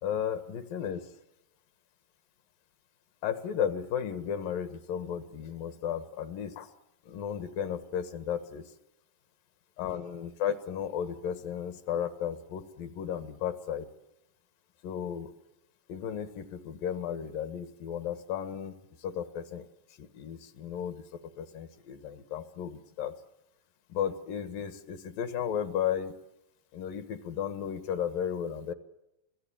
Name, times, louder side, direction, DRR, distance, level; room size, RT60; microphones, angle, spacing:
voice 1, 0.0-1.1 3.2-6.7 7.1-8.6 9.8-13.8 14.8-15.3 15.9-18.8 19.0-19.7 20.0-21.0 21.4-23.1 23.9-26.1 26.7-28.7, left 8 dB, 85° left, 10 dB, 3.2 m, -34 dB
25.5 x 17.5 x 8.7 m, 0.87 s
omnidirectional pair, 3.8 m